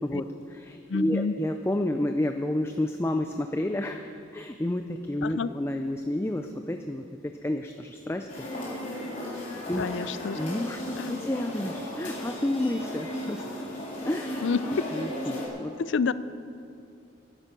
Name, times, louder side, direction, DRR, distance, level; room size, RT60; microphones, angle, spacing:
voice 1, 0.0-8.3 9.3-13.7 14.0-15.8, left 1 dB, 10° left, 6 dB, 0.4 m, -31 dB
voice 2, 0.9-1.3 5.2-5.5 9.8-10.4 11.0-11.2 14.4-14.6 15.8-16.1, left 5 dB, 70° left, 15 dB, 0.4 m, -28 dB
sound 1, 8.3-15.5, left 1 dB, 40° left, 4.1 m, -36 dB
14.0 x 11.0 x 6.0 m, 2.4 s
head